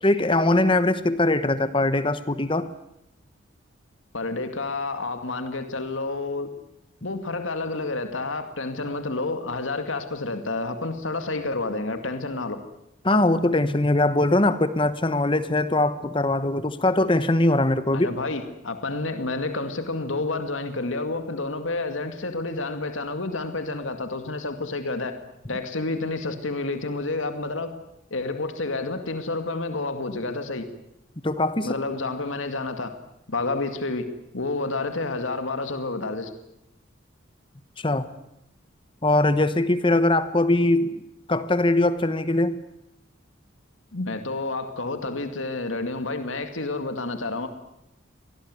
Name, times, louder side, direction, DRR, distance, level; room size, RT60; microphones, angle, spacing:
voice 1, 0.0-2.7 13.0-18.1 31.2-31.7 37.8-38.1 39.0-40.9 41.3-42.6, left 2 dB, 25° left, 13 dB, 1.2 m, -21 dB
voice 2, 4.1-6.5 7.0-12.6 17.9-25.2 25.5-27.7 28.1-30.7 31.6-32.9 33.3-34.1 34.3-36.3 43.9-47.5, left 3 dB, 85° left, 7 dB, 2.3 m, -29 dB
24.5 x 19.0 x 9.7 m, 0.83 s
head